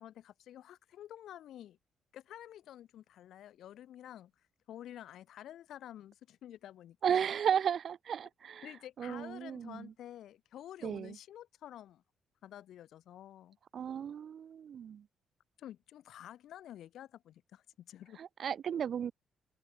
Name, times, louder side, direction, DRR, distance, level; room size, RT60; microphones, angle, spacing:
voice 1, 0.0-1.8 2.1-4.3 4.7-7.3 8.6-12.0 12.4-13.6 15.6-18.2, left 11 dB, 75° left, 1.3 m, -50 dB
voice 2, 7.0-8.7 9.0-9.9 10.8-11.2 13.7-15.1 18.2-19.1, right 8 dB, 60° right, 0.4 m, -34 dB
cardioid pair, 90°, 0 cm